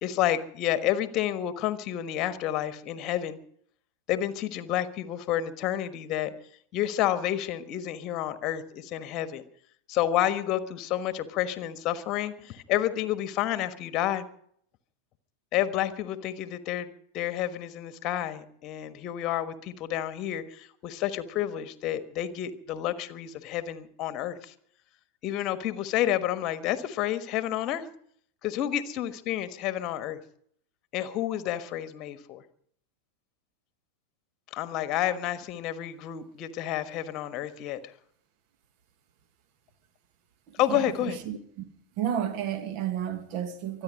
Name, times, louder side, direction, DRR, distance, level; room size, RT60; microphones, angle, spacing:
voice 1, 0.0-3.4 4.1-6.3 6.7-9.4 9.9-14.3 15.5-16.9 17.1-24.5 25.2-27.9 28.4-30.2 30.9-32.4 34.5-37.8 40.6-41.2, left 12 dB, 35° left, 1.3 m, -30 dB
voice 2, 40.5-41.6 42.0-43.8, right 10 dB, 45° right, 1.7 m, -32 dB
24.5 x 9.9 x 5.3 m
figure-of-eight pair, 90°, 0 cm